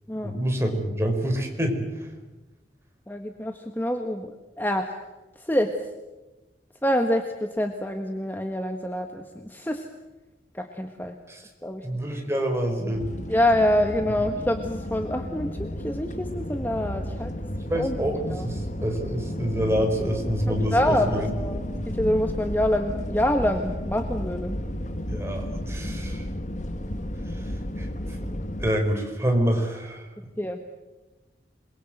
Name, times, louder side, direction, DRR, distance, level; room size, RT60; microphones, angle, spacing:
voice 1, 0.2-2.1 11.3-11.4 11.8-13.1 17.5-21.3 25.1-26.2 27.3-28.3 28.6-30.1, equal, 15° right, 3 dB, 4.9 m, -27 dB
voice 2, 3.1-5.0 5.4-5.7 6.8-9.9 10.5-11.1 11.6-11.8 13.3-17.3 17.7-18.5 20.7-21.6 21.9-24.5 30.4-30.7, left 1 dB, 10° left, 5 dB, 1.4 m, -26 dB
sound 1, 12.9-28.7, left 1 dB, 45° left, 1.7 m, -32 dB
28.0 x 22.5 x 7.9 m, 1.1 s
head